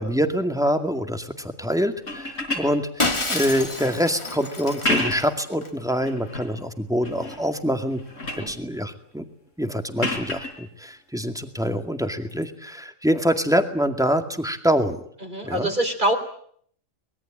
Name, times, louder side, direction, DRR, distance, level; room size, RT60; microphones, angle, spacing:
voice 1, 0.0-8.0 8.4-9.2 9.6-15.0 15.4-15.7, equal, 5° right, 7 dB, 2.1 m, -25 dB
sound 1, 2.0-3.7 4.6-5.4 5.9-6.5 7.0-7.5 7.8-8.5 10.0-10.6 12.3-12.4, left 1 dB, 80° left, 5.1 m, -30 dB
Shatter, 3.0-5.7, left 2 dB, 25° left, 1.9 m, -29 dB
voice 2, 15.2-16.2, right 1 dB, 40° right, 3 dB, 3.8 m, -24 dB
24.5 x 21.5 x 8.9 m, 0.63 s
omnidirectional pair, 1.3 m